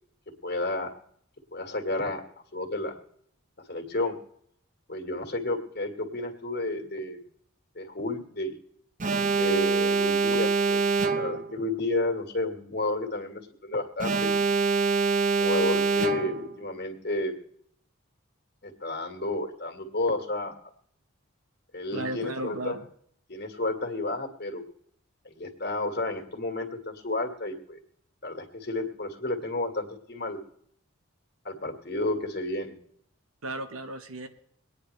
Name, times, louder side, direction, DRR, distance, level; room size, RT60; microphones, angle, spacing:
voice 1, 0.4-1.0 1.5-2.2 2.5-3.0 3.6-4.2 4.9-7.2 7.8-8.5 9.3-14.3 15.4-17.4 18.6-20.6 21.7-22.8 23.3-24.7 25.2-27.8 28.2-30.4 31.4-32.8, left 2 dB, 50° left, 4 dB, 1.9 m, -31 dB
Alarm, 9.0-11.5 14.0-16.5, right 4 dB, 35° right, 0.6 m, -25 dB
voice 2, 21.9-22.9 33.4-34.3, right 2 dB, 90° right, 7 dB, 1.2 m, -35 dB
23.5 x 9.6 x 3.3 m, 0.67 s
head